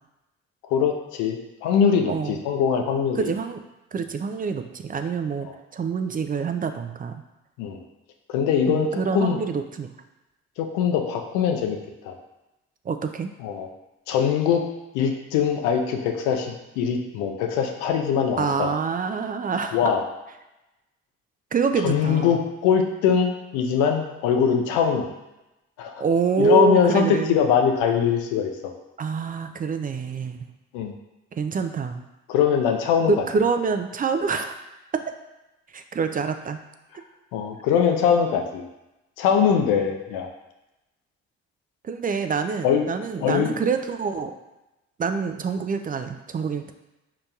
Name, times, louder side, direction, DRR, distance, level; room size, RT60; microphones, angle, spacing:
voice 1, 0.7-3.3 5.4-5.5 7.6-7.8 8.3-9.4 10.6-11.8 12.0-12.2 13.4-13.7 14.1-14.6 14.9-18.7 19.7-20.0 21.8-25.1 25.8-26.0 26.4-28.5 30.7-30.9 32.3-33.1 37.3-38.6 39.2-40.3 42.6-42.9 43.2-43.5, left 7 dB, 85° left, 3 dB, 0.5 m, -22 dB
voice 2, 2.1-2.4 3.1-3.6 3.9-7.1 8.7-9.9 12.8-13.3 18.4-19.9 21.5-22.4 26.0-27.4 29.0-30.5 31.3-32.0 33.1-34.6 34.9-35.0 35.7-36.6 41.8-44.3 45.0-46.7, right 5 dB, 30° right, 7 dB, 0.4 m, -26 dB
5.0 x 2.9 x 2.3 m, 0.98 s
supercardioid pair, 55°, 30 cm